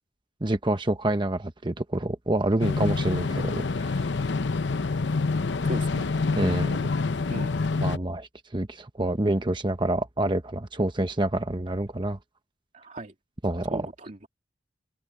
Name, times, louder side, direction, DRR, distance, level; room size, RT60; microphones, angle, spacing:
voice 1, 0.4-4.0 6.4-6.9 7.8-12.2 13.4-13.8, right 1 dB, 25° right, 1.0 m, -27 dB
sound 1, 2.6-8.0, left 3 dB, 70° left, 0.7 m, -26 dB
voice 2, 5.6-6.1 7.3-7.6 12.7-13.1 13.7-14.3, right 1 dB, 40° right, 2.6 m, -37 dB
head